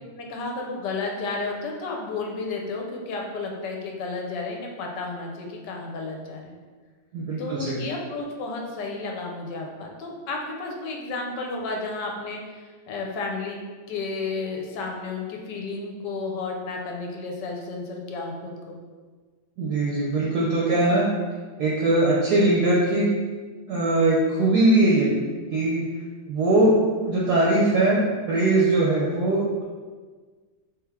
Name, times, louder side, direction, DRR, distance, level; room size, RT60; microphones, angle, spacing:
voice 1, 0.2-6.5 7.4-13.6 13.9-18.8, left 3 dB, 70° left, 0 dB, 1.1 m, -32 dB
voice 2, 7.1-7.8 19.6-21.1 21.6-23.1 23.7-25.1 25.5-25.9 26.3-26.8 27.0-29.6, right 2 dB, 70° right, -5 dB, 1.0 m, -21 dB
3.3 x 3.2 x 3.5 m, 1.5 s
omnidirectional pair, 2.1 m